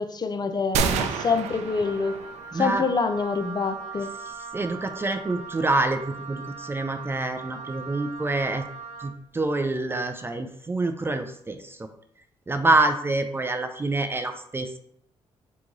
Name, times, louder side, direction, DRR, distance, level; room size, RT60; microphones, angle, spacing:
voice 1, 0.0-2.2 2.5-4.1, left 4 dB, 40° left, 7 dB, 0.5 m, -26 dB
sound 1, 0.7-2.6, right 6 dB, 90° right, 0.4 m, -28 dB
Wind instrument woodwind instrument, 0.9-9.2, right 5 dB, 70° right, 0.8 m, -40 dB
voice 2, 2.5-2.8 4.2-8.6 9.0-11.9 12.5-14.8, right 2 dB, 20° right, 7 dB, 0.4 m, -26 dB
3.8 x 3.0 x 3.7 m, 0.69 s
cardioid pair, 75°, 11 cm